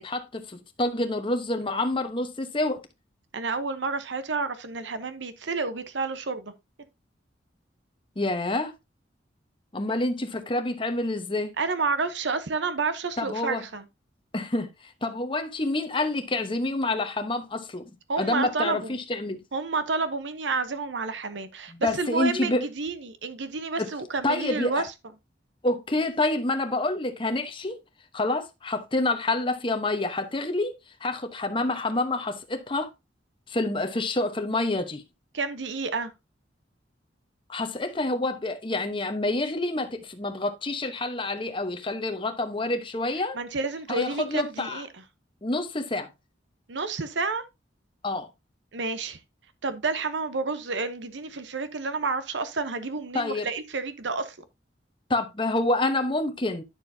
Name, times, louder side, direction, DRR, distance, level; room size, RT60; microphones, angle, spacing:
voice 1, 0.0-2.8 8.2-8.8 9.7-11.5 13.2-13.7 14.3-19.4 21.7-22.7 23.8-23.9 24.2-24.8 25.6-27.8 28.1-32.9 33.5-35.0 37.5-43.4 43.9-44.8 45.4-46.1 48.0-48.3 53.1-53.5 55.1-56.6, left 2 dB, 30° left, 1.0 m, -28 dB
voice 2, 3.3-6.5 11.6-13.8 18.1-18.9 19.5-24.9 35.3-36.1 43.4-44.9 46.7-47.4 48.7-49.2 49.6-54.3, right 4 dB, 75° right, 0.9 m, -30 dB
9.9 x 6.6 x 2.7 m
head